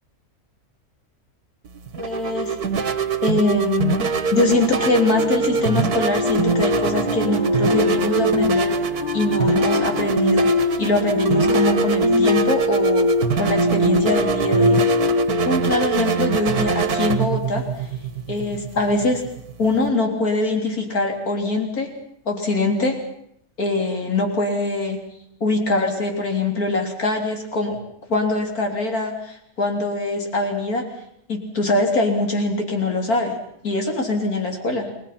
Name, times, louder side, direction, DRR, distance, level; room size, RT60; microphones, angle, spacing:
sound 1, 1.6-19.9, right 6 dB, 90° right, 1.9 m, -24 dB
voice 1, 2.0-2.6 3.2-4.0 4.3-8.8 9.1-10.5 10.8-13.1 13.4-14.8 15.4-17.9 18.3-19.2 19.6-21.9 22.3-23.0 23.6-25.0 25.4-27.8 28.1-30.9 31.3-33.4 33.6-34.9, left 2 dB, 75° left, 3 dB, 4.0 m, -23 dB
sound 2, 4.5-10.1, left 4 dB, 30° left, 1.8 m, -33 dB
sound 3, 5.9-17.0, left 2 dB, 20° right, 0.8 m, -23 dB
30.0 x 20.5 x 5.9 m, 0.72 s
omnidirectional pair, 1.6 m